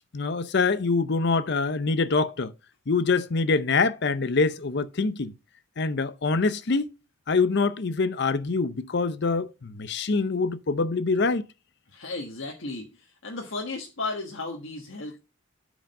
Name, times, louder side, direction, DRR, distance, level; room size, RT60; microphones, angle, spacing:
voice 1, 0.1-2.5 2.9-5.3 5.8-6.9 7.3-11.4, left 4 dB, 55° left, 0.6 m, -25 dB
voice 2, 11.9-15.2, left 3 dB, 75° left, 1.4 m, -35 dB
8.9 x 5.0 x 5.2 m
head